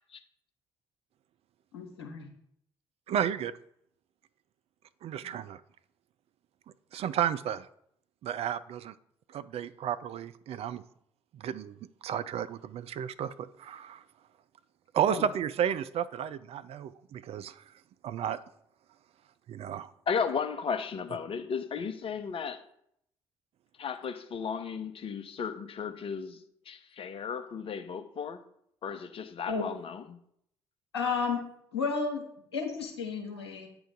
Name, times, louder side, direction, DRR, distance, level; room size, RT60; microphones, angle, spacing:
voice 1, 1.7-2.3 5.2-5.3 15.0-15.2 29.5-29.7 30.9-31.4 31.7-32.2 32.5-33.7, left 5 dB, 85° left, 2 dB, 0.9 m, -32 dB
voice 2, 3.1-3.5 5.0-5.6 6.9-7.7 8.2-8.9 9.3-10.8 11.3-11.7 12.0-13.3 13.6-14.0 14.9-17.5 18.0-18.4 19.5-19.9, right 9 dB, 50° right, 14 dB, 0.4 m, -32 dB
voice 3, 20.1-22.6 23.8-26.4 26.7-28.4 28.8-30.0, left 6 dB, 45° left, 8 dB, 0.8 m, -34 dB
8.9 x 3.0 x 5.1 m, 0.73 s
figure-of-eight pair, 45°, 13 cm